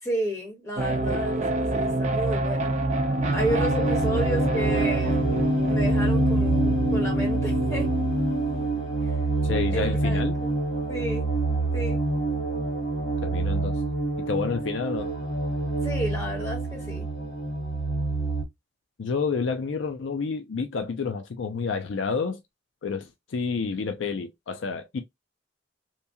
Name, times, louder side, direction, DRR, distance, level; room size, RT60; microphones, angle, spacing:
voice 1, 0.0-2.7 3.3-7.9 9.0-9.2 9.7-10.5 10.9-11.3 11.7-12.0 15.8-17.0, right 1 dB, 15° left, 1.6 m, -32 dB
sound 1, 0.8-8.7, right 1 dB, 40° right, 0.6 m, -26 dB
sound 2, 3.2-18.4, right 2 dB, 55° left, 1.8 m, -27 dB
voice 2, 9.4-10.4 13.2-13.8 14.3-15.1 19.0-22.4 22.8-25.0, left 5 dB, 75° left, 0.5 m, -29 dB
2.9 x 2.7 x 2.2 m
head